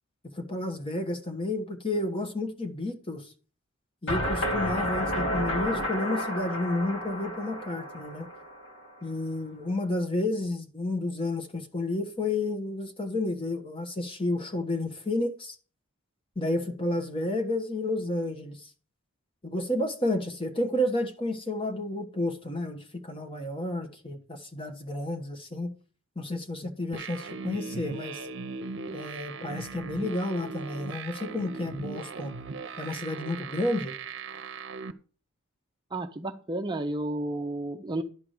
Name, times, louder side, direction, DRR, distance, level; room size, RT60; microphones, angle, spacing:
voice 1, 0.4-3.3 4.0-8.3 9.0-15.5 16.3-18.7 19.4-25.7 26.1-28.3 28.9-32.3 32.8-34.0, left 2 dB, 25° left, 1.3 m, -31 dB
sound 1, 4.1-9.0, equal, 60° left, 2.3 m, -31 dB
sound 2, 26.9-34.9, right 4 dB, 60° right, 0.8 m, -39 dB
voice 2, 35.9-38.0, right 1 dB, 20° right, 0.6 m, -32 dB
11.0 x 4.8 x 6.5 m
head